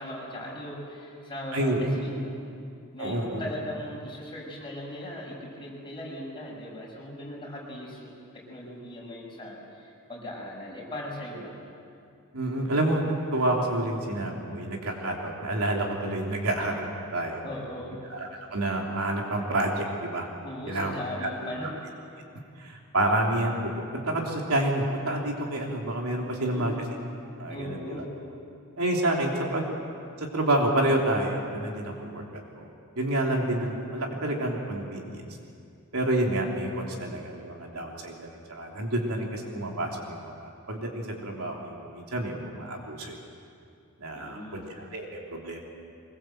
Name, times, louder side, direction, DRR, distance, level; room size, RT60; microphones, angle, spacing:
voice 1, 0.0-2.3 2.9-11.6 17.4-18.0 20.4-21.7 26.2-26.8 27.5-28.2 31.9-32.0 44.1-44.6, left 1 dB, 25° left, -3 dB, 6.3 m, -38 dB
voice 2, 1.5-2.0 3.0-3.4 12.3-17.4 18.1-20.3 20.7-20.9 21.2-21.3 22.6-26.7 27.4-28.0 28.8-29.7 30.2-32.2 32.6-32.7 32.9-35.2 35.9-43.2 44.0-45.6, right 1 dB, 75° right, 0 dB, 3.4 m, -29 dB
24.0 x 21.5 x 7.8 m, 2.4 s
head